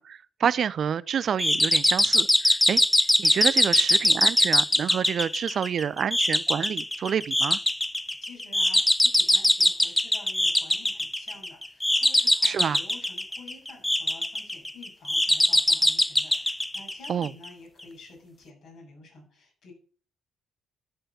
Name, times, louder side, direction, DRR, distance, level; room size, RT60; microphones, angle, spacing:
voice 1, 0.0-2.8 3.2-7.6 12.4-12.8 17.1-17.3, right 8 dB, 55° right, 0.5 m, -28 dB
sound 1, 1.4-17.5, left 1 dB, 10° left, 0.4 m, -23 dB
voice 2, 8.2-19.7, left 3 dB, 60° left, 7.3 m, -50 dB
13.0 x 5.6 x 6.6 m
hypercardioid pair, 45°, 0 cm